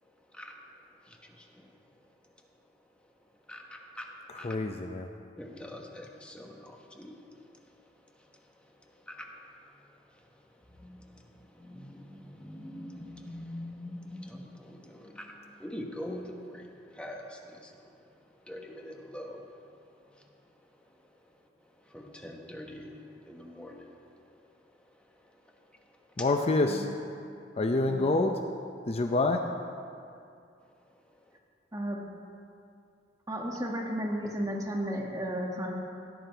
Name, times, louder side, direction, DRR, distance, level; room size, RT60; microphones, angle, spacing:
voice 1, 1.1-1.7 3.5-4.1 4.4-4.5 5.4-7.1 9.1-9.3 10.8-11.0 11.6-17.7 18.5-19.5 21.9-22.9 23.3-24.0, left 1 dB, 5° left, 1 dB, 1.1 m, -43 dB
voice 2, 4.3-5.1 26.2-26.9 27.6-28.3 28.9-29.4, left 2 dB, 35° left, 5 dB, 0.5 m, -27 dB
voice 3, 27.9-28.2 31.7-32.0 33.3-35.7, equal, 20° right, -1 dB, 1.6 m, -33 dB
16.5 x 9.9 x 4.5 m, 2.5 s
head